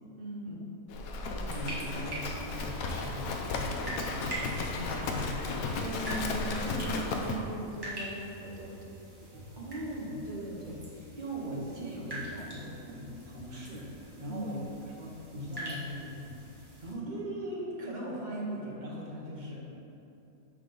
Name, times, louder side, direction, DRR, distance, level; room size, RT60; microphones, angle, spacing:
voice 1, 0.2-0.5 5.8-8.7 14.3-14.5, right 1 dB, 50° right, -1 dB, 1.1 m, -38 dB
Livestock farm animals working animals, 0.9-7.4, left 3 dB, 85° left, 1.1 m, -34 dB
voice 2, 1.2-5.3 9.5-19.7, equal, 35° right, -4 dB, 1.2 m, -40 dB
sound 1, 1.5-16.9, right 1 dB, 20° right, 1.2 m, -44 dB
6.3 x 5.5 x 3.9 m, 2.7 s
omnidirectional pair, 1.5 m